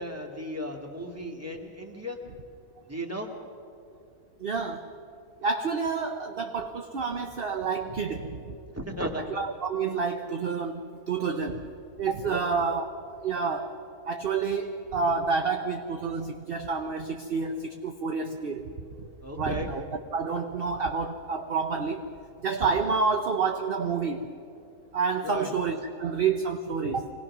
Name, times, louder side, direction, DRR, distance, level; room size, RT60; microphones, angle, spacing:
voice 1, 0.0-2.2 2.9-3.3 8.8-9.3 12.3-12.4 19.2-19.7 25.2-25.5, equal, 10° right, 1 dB, 1.9 m, -35 dB
voice 2, 4.4-4.9 5.4-8.6 9.3-11.7 12.0-13.8 14.0-18.7 19.0-19.1 19.4-19.8 20.1-22.1 22.4-24.3 24.9-27.1, right 5 dB, 45° right, 5 dB, 0.9 m, -29 dB
25.0 x 19.0 x 6.0 m, 2.5 s
omnidirectional pair, 1.6 m